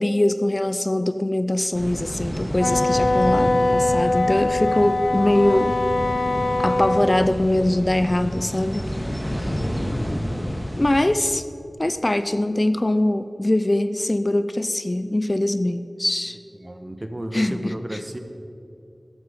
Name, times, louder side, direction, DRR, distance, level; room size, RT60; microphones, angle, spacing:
voice 1, 0.0-5.8 6.6-8.8 9.4-9.5 10.8-11.4 11.8-16.4 17.3-18.0, left 1 dB, 35° left, 11 dB, 0.5 m, -22 dB
sound 1, 1.7-11.0, equal, 5° left, 1.9 m, -29 dB
Wind instrument woodwind instrument, 2.6-7.1, left 2 dB, 70° left, 0.7 m, -22 dB
voice 2, 16.6-18.2, right 1 dB, 30° right, 7 dB, 1.2 m, -32 dB
14.0 x 12.0 x 5.2 m, 2.6 s
wide cardioid pair, 55°, 0 cm